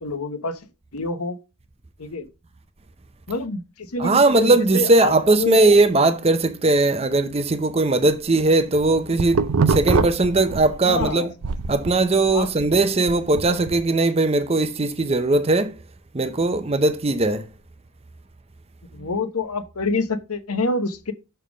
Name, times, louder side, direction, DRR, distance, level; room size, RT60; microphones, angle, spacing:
voice 1, 0.0-0.6 0.9-1.4 2.0-2.3 3.3-5.1 5.4-5.6 10.8-11.3 12.3-12.5 18.9-21.1, left 3 dB, 90° left, 1.0 m, -26 dB
voice 2, 4.0-11.3 11.7-15.8 16.1-17.5, right 2 dB, 25° right, 0.6 m, -19 dB
sound 1, 8.6-11.1 11.4-13.8, right 4 dB, 80° right, 0.6 m, -24 dB
6.7 x 3.5 x 6.2 m
head